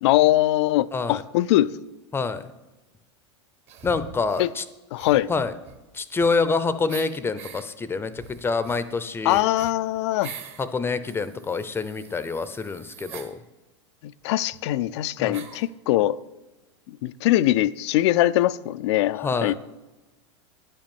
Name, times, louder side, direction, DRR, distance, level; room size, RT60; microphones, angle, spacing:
voice 1, 0.0-1.7 4.4-4.5 4.9-5.3 9.2-10.3 14.0-16.2 16.9-19.5, left 15 dB, 65° left, 0.4 m, -22 dB
voice 2, 0.9-1.2 2.1-2.5 3.8-4.6 5.3-5.5 5.9-9.5 10.6-13.4 15.2-15.4 19.2-19.5, left 4 dB, 15° left, 0.6 m, -26 dB
sound 1, 3.7-4.5 4.9-6.5 6.9-7.6 8.1-10.7 11.1-13.3 14.2-14.3 14.5-14.6 15.3-15.7, right 7 dB, 45° right, 1.3 m, -43 dB
10.0 x 5.3 x 7.1 m
hypercardioid pair, 110°, 15 cm